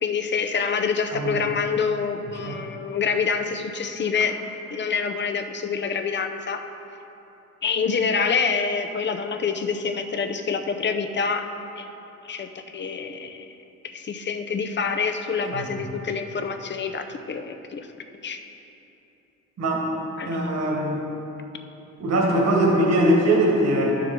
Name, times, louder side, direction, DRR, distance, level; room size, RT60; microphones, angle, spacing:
voice 1, 0.0-4.4 4.7-6.6 7.6-11.4 11.8-11.9 12.2-13.5 13.8-17.9 18.2-18.4 20.2-20.5, left 5 dB, 35° left, 6 dB, 0.7 m, -26 dB
voice 2, 19.6-19.9 20.2-21.1 22.0-23.9, right 1 dB, 60° right, -2 dB, 1.8 m, -21 dB
11.5 x 6.6 x 3.7 m, 3.0 s
cardioid pair, 90°, 30 cm